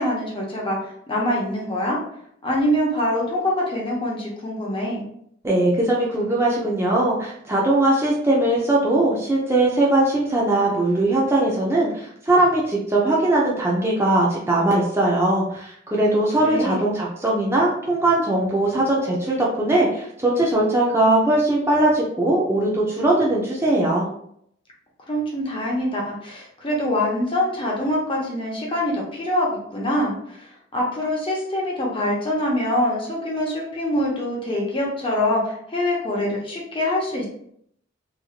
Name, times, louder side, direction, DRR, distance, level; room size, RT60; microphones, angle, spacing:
voice 1, 0.0-2.0 2.4-5.1 16.4-16.8 25.1-30.5 30.7-37.3, left 1 dB, 30° left, -2 dB, 0.8 m, -24 dB
voice 2, 5.4-24.1, right 1 dB, 15° right, -4 dB, 0.5 m, -20 dB
3.0 x 2.5 x 2.4 m, 0.69 s
head